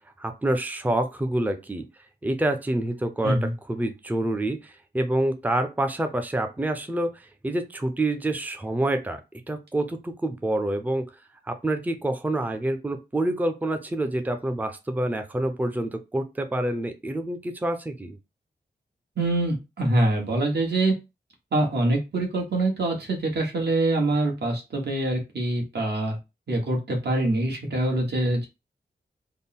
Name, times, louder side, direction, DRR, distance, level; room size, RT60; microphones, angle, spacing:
voice 1, 0.2-1.9 2.2-3.4 3.7-9.2 9.5-11.1 11.4-18.2, right 1 dB, 10° right, 7 dB, 0.5 m, -27 dB
voice 2, 19.2-20.9 21.5-26.2 26.5-28.5, right 2 dB, 75° right, 0 dB, 1.4 m, -24 dB
3.6 x 2.1 x 4.1 m, 0.25 s
wide cardioid pair, 120°, 18 cm